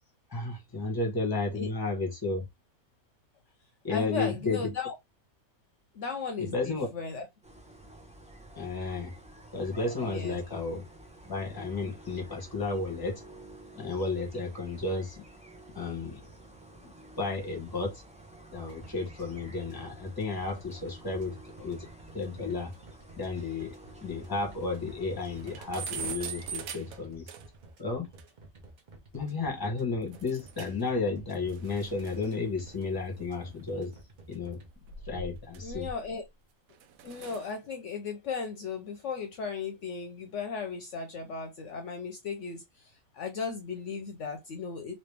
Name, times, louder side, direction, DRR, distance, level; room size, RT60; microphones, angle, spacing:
voice 1, 0.3-2.5 3.8-4.6 6.4-6.9 8.5-9.1 9.5-10.8 11.2-13.2 13.7-15.2 15.7-16.2 16.8-16.9 17.2-18.0 18.5-21.9 22.1-22.7 23.2-23.8 24.0-27.3 27.8-28.1 29.1-33.9 34.3-34.6 35.0-35.9, left 3 dB, 15° left, 1.1 m, -33 dB
voice 2, 3.9-4.9 5.9-7.3 9.9-10.4 35.6-36.2 37.0-44.9, left 5 dB, 65° left, 0.9 m, -36 dB
sound 1, 7.4-26.6, right 1 dB, 5° right, 0.5 m, -51 dB
sound 2, 18.5-34.7, right 2 dB, 40° right, 0.9 m, -52 dB
sound 3, 23.4-23.5 23.8-23.9 24.2-24.3 24.7-24.8 25.1-27.7 28.2-28.3 30.1-30.9 31.2-33.8 34.6-36.3 36.7-37.5, right 6 dB, 80° right, 1.0 m, -43 dB
3.1 x 2.9 x 3.3 m
omnidirectional pair, 1.5 m